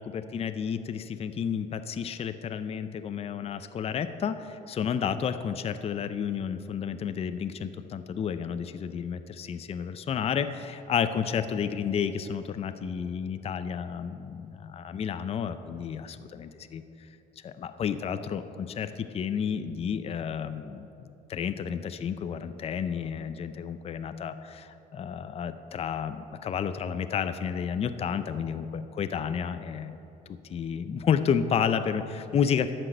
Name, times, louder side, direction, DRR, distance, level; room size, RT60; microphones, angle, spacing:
voice 1, 0.0-16.8 17.4-30.0 30.5-32.7, left 7 dB, 35° left, 10 dB, 0.5 m, -31 dB
11.0 x 6.1 x 7.8 m, 2.9 s
cardioid pair, 110°, 17 cm